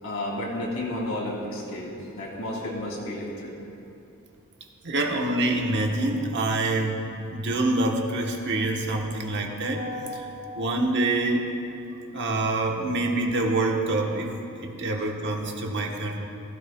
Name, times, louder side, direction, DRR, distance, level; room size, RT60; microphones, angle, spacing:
voice 1, 0.0-3.5, left 1 dB, 80° left, -3 dB, 2.9 m, -32 dB
voice 2, 4.8-7.1 7.3-11.5 12.1-14.3 14.6-16.2, right 2 dB, 55° right, 1 dB, 1.2 m, -26 dB
16.0 x 16.0 x 2.3 m, 2.9 s
head